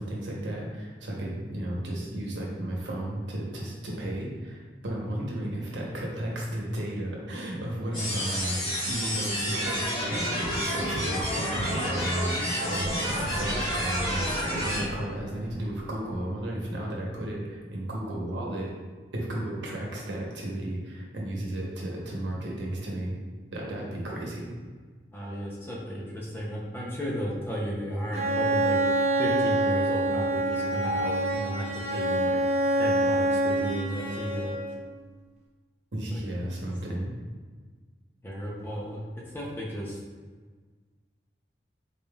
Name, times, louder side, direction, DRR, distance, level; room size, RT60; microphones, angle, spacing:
voice 1, 0.0-9.8 10.1-18.7 19.1-23.1 23.5-24.5 35.9-37.1, right 1 dB, 90° right, -3 dB, 0.9 m, -33 dB
sound 1, 7.8-17.1, equal, 60° left, 1.1 m, -42 dB
sound 2, 7.9-14.8, equal, 30° left, 1.3 m, -30 dB
voice 2, 25.1-28.8 29.2-32.5 32.8-34.5 36.1-36.2 38.2-40.0, equal, 10° left, -4 dB, 0.5 m, -34 dB
Bowed string instrument, 28.1-34.8, right 1 dB, 35° right, 0.5 m, -26 dB
4.0 x 3.5 x 2.3 m, 1.5 s
head